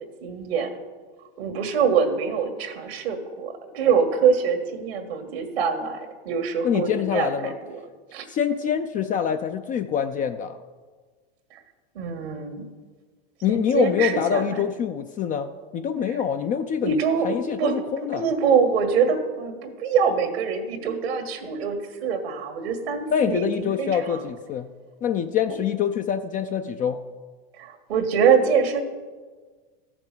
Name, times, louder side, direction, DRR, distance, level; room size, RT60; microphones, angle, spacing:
voice 1, 0.2-0.7 1.4-7.8 8.1-8.3 11.5-11.6 11.9-12.6 13.5-14.6 16.8-17.8 18.1-24.2 27.6-28.8, right 6 dB, 90° right, 6 dB, 1.7 m, -24 dB
voice 2, 6.6-7.5 8.3-10.6 13.4-18.2 23.1-24.7 25.0-27.0, left 8 dB, 25° left, 8 dB, 0.4 m, -25 dB
13.5 x 6.0 x 6.7 m, 1.4 s
supercardioid pair, 125°, 30 cm